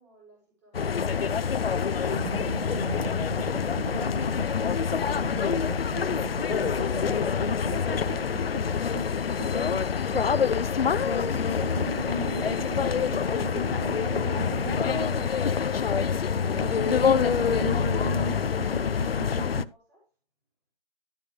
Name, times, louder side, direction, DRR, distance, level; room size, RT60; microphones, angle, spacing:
voice 1, 0.0-0.1, equal, 15° right, 6.3 m, -57 dB
sound 1, 0.7-19.6, left 6 dB, 70° left, 0.7 m, -26 dB
sound 2, 2.1-4.6 4.9-10.5 11.0-16.0 16.4-19.7, right 3 dB, 35° right, 0.5 m, -37 dB
12.0 x 8.3 x 3.3 m
hypercardioid pair, 170°, 31 cm